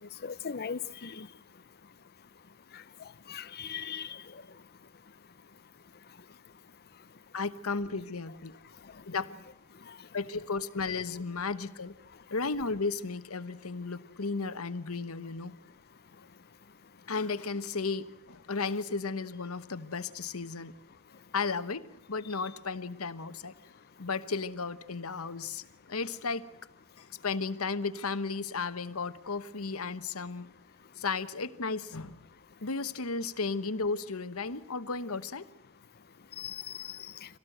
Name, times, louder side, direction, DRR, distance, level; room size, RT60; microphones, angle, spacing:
voice 1, 0.2-1.3 3.3-4.2 36.4-36.9, left 7 dB, 45° left, 0.7 m, -38 dB
voice 2, 7.3-8.5 9.1-9.3 10.1-11.9 12.3-15.6 17.1-20.7 21.3-23.5 24.0-25.6 25.9-26.5 27.2-30.5 31.0-32.2 32.6-35.5, left 4 dB, 75° left, 1.2 m, -34 dB
25.5 x 18.0 x 7.9 m
head